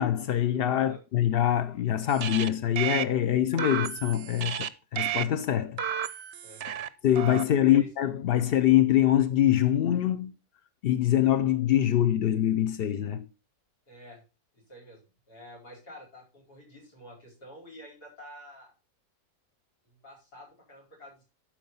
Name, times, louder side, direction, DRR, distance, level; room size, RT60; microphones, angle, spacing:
voice 1, 0.0-5.8 7.0-10.3 10.8-13.3, left 11 dB, 70° left, 0.5 m, -24 dB
sound 1, 2.1-2.5 2.8-3.0 3.6-4.7 5.0-5.2 5.8-6.9 7.2-7.4, right 9 dB, 60° right, 0.7 m, -32 dB
voice 2, 6.4-6.8 7.6-7.9 13.9-14.2 14.5-15.0 15.3-18.7 19.8-21.2, equal, 90° left, 5.1 m, -49 dB
12.0 x 4.7 x 5.4 m
omnidirectional pair, 1.6 m